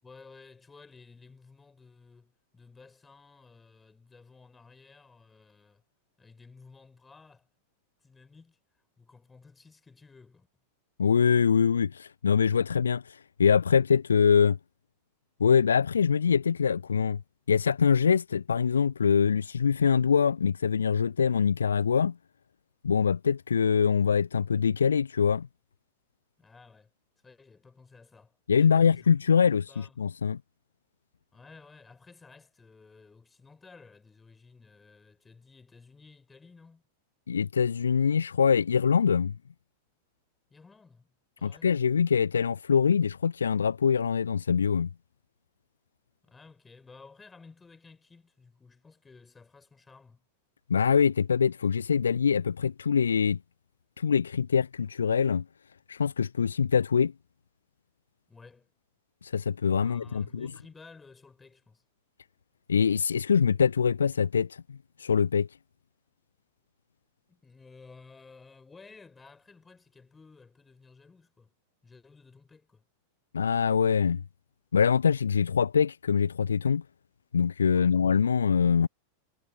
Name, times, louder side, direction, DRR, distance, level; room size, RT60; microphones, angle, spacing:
voice 1, 0.0-5.8 6.2-7.5 8.0-8.6 9.0-10.5 26.4-26.9 27.2-29.1 29.5-30.0 31.3-36.8 40.5-41.8 46.2-50.2 58.3-58.7 59.8-61.8 67.3-71.5 71.8-72.8 77.7-78.0, left 4 dB, 15° left, 5.3 m, -54 dB
voice 2, 11.0-14.6 15.4-17.2 17.5-22.1 22.8-25.5 28.5-30.4 37.3-39.3 41.4-44.9 50.7-53.4 54.0-55.4 55.9-57.1 59.2-60.2 62.7-65.5 73.3-74.2 74.7-76.8 77.3-78.9, left 6 dB, 70° left, 0.6 m, -24 dB
figure-of-eight pair, 90°, 0 cm